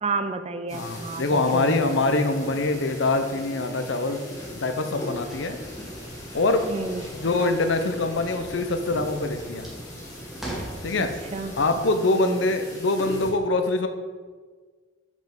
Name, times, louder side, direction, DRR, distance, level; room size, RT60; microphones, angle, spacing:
voice 1, 0.0-1.8 6.7-7.0 11.0-11.6 12.2-12.5, right 4 dB, 30° right, 9 dB, 0.4 m, -31 dB
voice 2, 0.7-4.2 4.6-5.6 6.3-6.7 7.1-9.7 10.8-11.1 11.6-13.9, left 2 dB, 70° left, 7 dB, 0.7 m, -24 dB
sound 1, 0.7-13.3, left 1 dB, 20° left, 1.5 m, -40 dB
sound 2, 5.1-11.8, right 1 dB, ahead, 1.4 m, -41 dB
5.3 x 5.2 x 6.0 m, 1.5 s
head